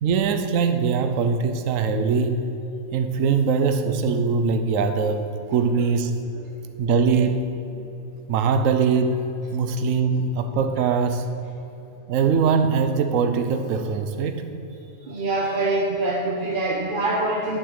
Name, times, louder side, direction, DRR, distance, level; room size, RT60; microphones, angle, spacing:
voice 1, 0.0-2.4 2.9-6.1 6.8-7.5 8.3-9.2 9.5-11.3 12.1-14.5, right 5 dB, 70° right, 8 dB, 1.1 m, -22 dB
voice 2, 15.0-17.6, right 2 dB, 40° right, -2 dB, 1.0 m, -24 dB
11.5 x 6.5 x 6.6 m, 3.0 s
omnidirectional pair, 1.5 m